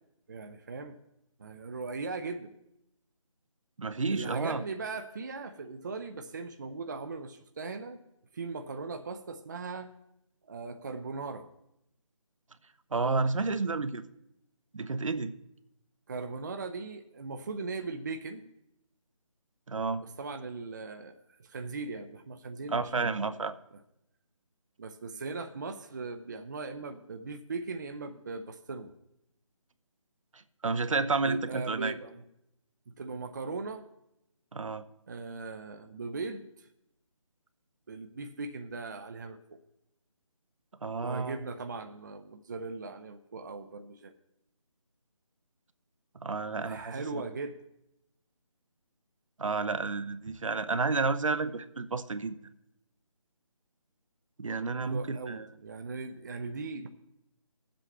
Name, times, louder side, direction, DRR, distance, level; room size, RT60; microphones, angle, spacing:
voice 1, 0.3-1.0 1.4-2.5 4.1-8.0 8.3-9.9 10.5-11.5 16.1-18.4 20.0-23.3 24.8-28.9 31.2-32.2 32.9-33.8 35.1-36.7 37.9-39.6 41.0-44.1 46.6-47.6 50.3-50.4 54.8-56.9, right 3 dB, 35° right, 7 dB, 0.5 m, -39 dB
voice 2, 3.8-4.6 12.9-14.1 14.7-15.3 19.7-20.0 22.7-23.5 30.3-32.0 34.5-34.8 40.8-41.4 46.2-47.2 49.4-52.4 54.4-55.5, right 4 dB, 70° right, 12 dB, 0.7 m, -31 dB
18.5 x 7.7 x 3.3 m, 0.83 s
figure-of-eight pair, 160°, 17 cm